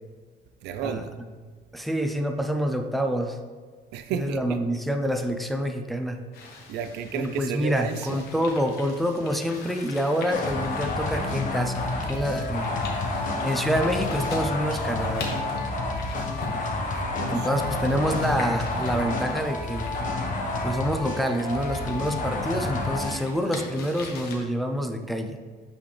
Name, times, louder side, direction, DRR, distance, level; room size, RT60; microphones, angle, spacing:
voice 1, 0.6-1.1 3.9-4.6 6.7-8.3 13.0-13.6 16.5-18.2 20.3-20.5 21.8-22.4, right 7 dB, 80° right, 0.5 m, -35 dB
voice 2, 1.7-3.4 4.2-6.2 7.1-12.7 13.4-15.3 17.3-20.1 20.6-25.4, equal, ahead, 0.5 m, -27 dB
sound 1, 6.3-24.3, left 4 dB, 70° left, 1.3 m, -43 dB
sound 2, 10.3-23.2, left 2 dB, 50° left, 1.2 m, -29 dB
8.5 x 4.1 x 3.3 m
cardioid pair, 110°, 17 cm